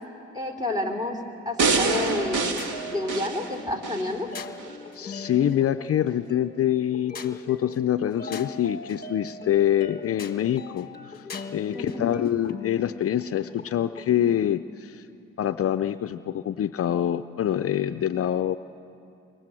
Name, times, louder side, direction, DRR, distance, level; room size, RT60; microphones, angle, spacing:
voice 1, 0.3-1.2 1.4-4.3 11.7-12.0, left 2 dB, 15° right, 4 dB, 3.4 m, -29 dB
sound 1, 1.6-4.1 4.6-4.7, right 4 dB, 80° right, 2.1 m, -26 dB
sound 2, 2.0-14.1, left 3 dB, 30° left, 1.4 m, -40 dB
voice 2, 4.9-11.2 11.5-15.1 15.4-18.6, left 10 dB, 50° left, 10 dB, 0.6 m, -25 dB
25.0 x 22.5 x 7.6 m, 2.6 s
cardioid pair, 90°, 30 cm